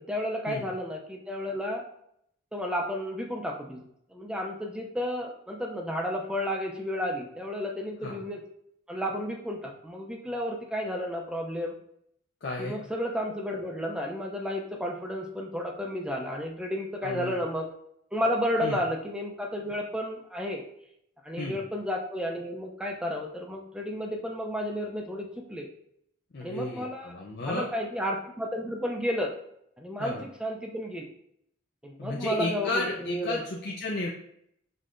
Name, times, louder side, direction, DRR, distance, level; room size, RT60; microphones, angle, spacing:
voice 1, 0.1-1.8 2.5-8.4 8.9-11.7 12.6-17.7 18.1-20.6 21.2-25.7 26.4-27.2 27.5-29.3 29.8-31.1 31.8-33.4, equal, 5° right, 0 dB, 0.4 m, -32 dB
voice 2, 12.4-12.8 17.0-17.3 18.6-18.8 21.4-21.6 26.3-27.7 30.0-30.3 32.0-34.1, left 2 dB, 50° left, -2 dB, 0.5 m, -33 dB
5.3 x 3.2 x 2.5 m, 0.73 s
head